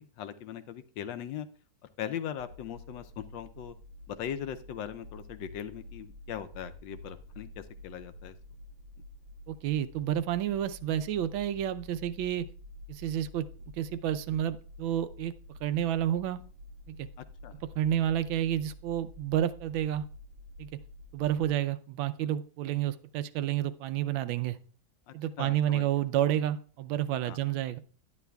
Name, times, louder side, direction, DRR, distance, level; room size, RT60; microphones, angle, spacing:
voice 1, 0.0-1.5 2.0-3.7 4.1-8.3 17.2-17.6 25.1-25.8 27.2-27.4, left 9 dB, 75° left, 11 dB, 1.2 m, -40 dB
sound 1, 2.4-21.6, left 1 dB, 70° right, 0.9 m, -49 dB
voice 2, 9.5-12.4 12.9-13.4 13.8-15.3 15.6-16.4 16.9-17.1 17.7-20.0 20.6-20.7 21.1-24.6 25.1-27.8, right 11 dB, 90° right, 12 dB, 1.4 m, -30 dB
11.0 x 9.7 x 2.3 m, 0.42 s
omnidirectional pair, 2.1 m